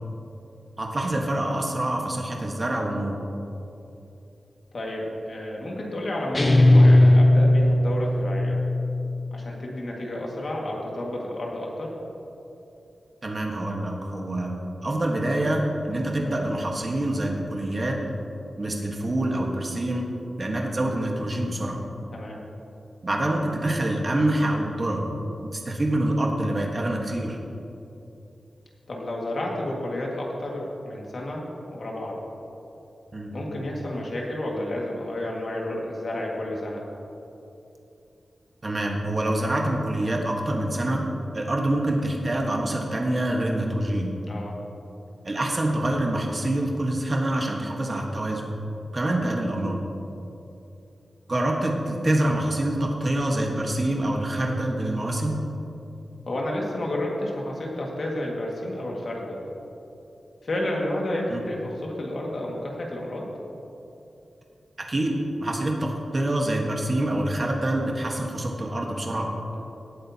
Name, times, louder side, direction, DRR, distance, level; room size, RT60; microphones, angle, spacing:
voice 1, 0.8-3.2 13.2-18.0 18.6-20.1 20.4-21.8 23.0-25.1 25.4-27.4 33.1-33.3 38.6-41.0 41.3-44.1 45.2-48.4 48.9-49.8 51.3-55.4 61.3-61.4 64.8-65.1 65.4-69.3, right 1 dB, 30° right, 0 dB, 1.3 m, -26 dB
voice 2, 4.7-8.6 9.3-11.9 22.1-22.4 28.9-32.2 33.3-36.8 44.3-44.5 56.3-59.4 60.4-63.3, left 1 dB, 50° left, -2 dB, 1.8 m, -31 dB
sound 1, 6.3-8.9, left 1 dB, 20° left, 0.9 m, -17 dB
17.5 x 8.5 x 2.8 m, 2.8 s
wide cardioid pair, 165°, 0 cm